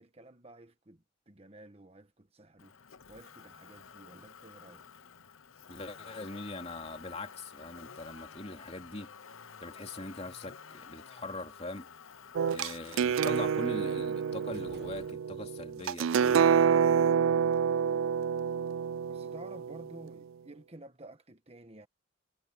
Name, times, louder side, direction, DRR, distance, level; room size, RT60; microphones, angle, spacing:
voice 1, 0.0-2.8 3.1-4.9 17.2-17.6 19.1-21.9, right 1 dB, 30° right, 1.4 m, -52 dB
Motor vehicle (road), 2.6-15.1, left 6 dB, 90° left, 1.0 m, -51 dB
voice 2, 5.7-9.1 9.6-11.9 12.5-16.4, left 2 dB, 30° left, 3.0 m, -42 dB
sound 1, 12.3-20.1, right 7 dB, 85° right, 0.3 m, -28 dB
sound 2, 14.5-15.7, right 2 dB, 55° right, 1.3 m, -56 dB
head